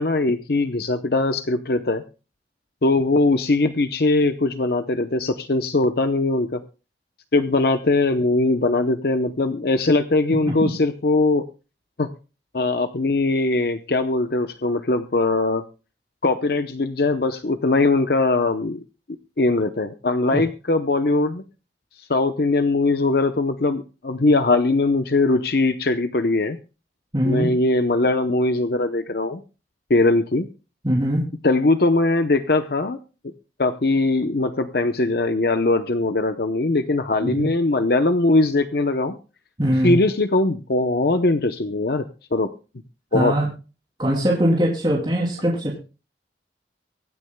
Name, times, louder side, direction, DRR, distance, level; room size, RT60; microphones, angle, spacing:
voice 1, 0.0-2.0 2.8-6.6 7.3-11.4 12.0-12.1 12.5-15.6 16.2-18.8 19.4-21.4 22.1-26.6 27.2-29.4 29.9-30.5 31.4-33.0 33.6-39.2 39.8-42.0 42.3-42.5 43.1-43.3, left 2 dB, 60° left, 9 dB, 0.8 m, -20 dB
voice 2, 27.1-27.5 30.8-31.2 37.2-37.5 39.6-40.0 43.1-43.5 44.0-45.8, equal, 25° right, -4 dB, 2.9 m, -21 dB
24.0 x 9.6 x 2.2 m, 0.33 s
head